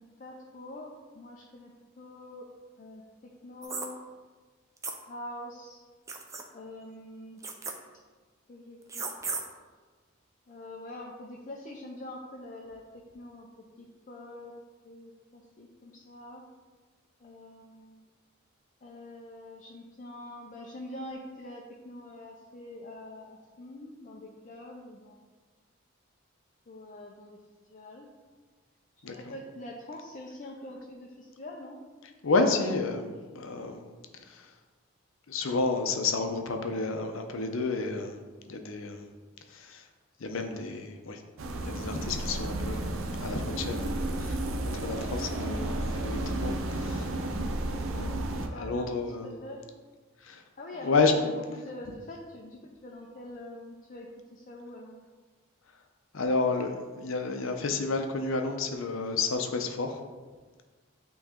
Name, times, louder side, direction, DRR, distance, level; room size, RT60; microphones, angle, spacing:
voice 1, 0.0-1.7 2.0-2.5 2.8-3.0 3.4-4.0 5.1-5.8 6.5-7.4 8.5-9.0 10.5-12.8 13.1-13.5 13.8-14.6 14.8-16.4 17.2-18.1 18.8-25.3 26.7-27.4 27.7-28.1 29.1-31.8 48.4-49.6 50.6-55.0, left 1 dB, 40° left, -1 dB, 0.5 m, -44 dB
sound 1, 3.6-3.9 4.8-5.0 6.1-6.4 7.4-7.7 8.9-9.4, right 4 dB, 15° right, 0.4 m, -35 dB
voice 2, 29.0-29.3 32.2-33.9 34.3-34.5 35.3-38.2 38.5-39.0 39.5-39.8 40.2-41.2 41.6-42.9 43.2-44.4 44.7-47.1 47.9-49.4 50.2-50.4 50.8-51.1 56.1-60.0, left 3 dB, 75° left, 5 dB, 0.6 m, -30 dB
sound 2, 41.4-48.5, right 1 dB, 75° right, 0.6 m, -32 dB
8.8 x 3.1 x 3.7 m, 1.4 s
head